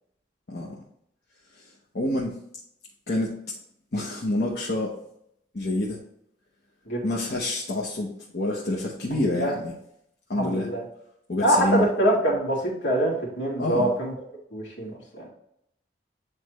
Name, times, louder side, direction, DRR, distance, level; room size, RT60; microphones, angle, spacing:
voice 1, 0.5-0.8 1.5-2.4 3.1-3.4 3.9-4.9 5.5-6.0 7.0-9.7 10.3-10.7 11.3-11.8 13.6-13.9, left 2 dB, 65° left, -4 dB, 1.0 m, -27 dB
voice 2, 9.1-9.5 10.3-10.8 11.4-14.1 14.5-15.3, right 1 dB, 80° left, -3 dB, 2.3 m, -24 dB
9.6 x 3.3 x 3.1 m, 0.74 s
head